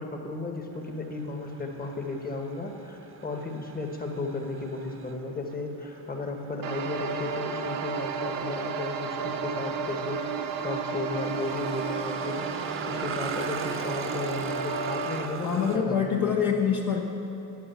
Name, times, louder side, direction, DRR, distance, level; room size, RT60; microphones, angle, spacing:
voice 1, 0.0-16.6, left 3 dB, 20° left, 3 dB, 1.6 m, -34 dB
sound 1, 0.7-15.8, right 5 dB, 30° right, 1.0 m, -42 dB
sound 2, 6.6-15.3, right 5 dB, 55° right, 1.0 m, -32 dB
voice 2, 15.4-17.0, left 7 dB, 45° left, 0 dB, 1.2 m, -25 dB
15.5 x 9.6 x 5.8 m, 2.9 s
cardioid pair, 110°, 42 cm